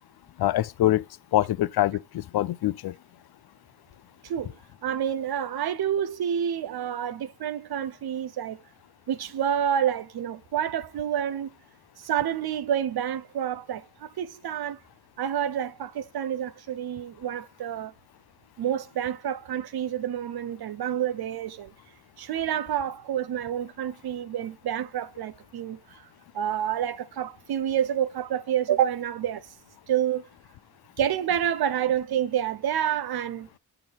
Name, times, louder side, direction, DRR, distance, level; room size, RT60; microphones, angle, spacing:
voice 1, 0.4-1.0 1.3-2.9, left 14 dB, 65° left, 0.5 m, -24 dB
voice 2, 4.2-4.6 4.8-8.6 9.1-11.5 12.0-14.8 15.2-17.9 18.6-21.7 22.2-26.1 26.3-29.5 29.9-30.2 31.0-33.5, right 9 dB, 65° right, 0.8 m, -28 dB
7.5 x 4.4 x 4.0 m
cardioid pair, 85°, 41 cm